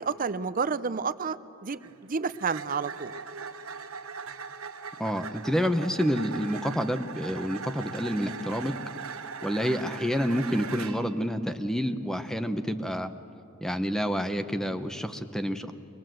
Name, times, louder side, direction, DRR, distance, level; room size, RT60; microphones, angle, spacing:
voice 1, 0.0-1.4 1.6-3.1, right 5 dB, 40° right, 13 dB, 0.6 m, -30 dB
sound 1, 1.7-11.2, right 5 dB, 80° right, 1.0 m, -40 dB
voice 2, 5.0-8.8 9.4-13.1 13.6-15.7, equal, ahead, 9 dB, 0.8 m, -28 dB
24.0 x 20.5 x 7.8 m, 2.7 s
head